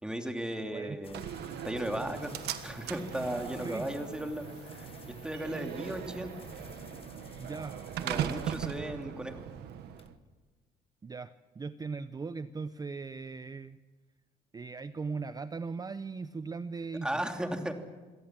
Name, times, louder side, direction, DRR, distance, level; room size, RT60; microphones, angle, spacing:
voice 1, 0.0-1.2 1.6-2.3 2.6-4.9 5.2-6.3 8.0-9.5 17.0-17.7, right 1 dB, 5° right, 5 dB, 2.8 m, -36 dB
sound 1, 1.0-9.3 9.6-10.1, left 5 dB, 35° left, 1.5 m, -51 dB
Slam, 1.1-10.1, right 10 dB, 75° right, 1.5 m, -39 dB
voice 2, 3.6-3.9 7.4-7.8 11.0-13.8 14.5-17.1, right 4 dB, 20° right, 13 dB, 0.6 m, -39 dB
26.0 x 17.5 x 7.5 m, 1.3 s
cardioid pair, 110°, 17 cm